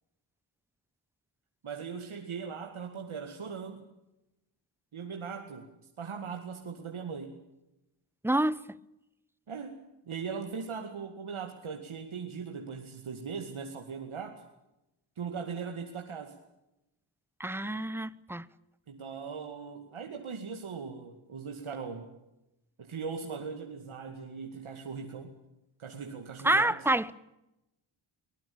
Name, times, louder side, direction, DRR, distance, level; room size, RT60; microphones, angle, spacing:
voice 1, 1.6-3.9 4.9-5.7 6.0-7.4 9.5-9.8 10.1-14.4 15.2-16.4 18.9-22.1 22.8-25.4 25.8-26.8, right 5 dB, 85° right, 2.3 m, -39 dB
voice 2, 8.2-8.6 17.4-18.4 26.4-27.1, right 1 dB, 5° right, 0.9 m, -27 dB
23.0 x 20.0 x 8.7 m
cardioid pair, 60°, 48 cm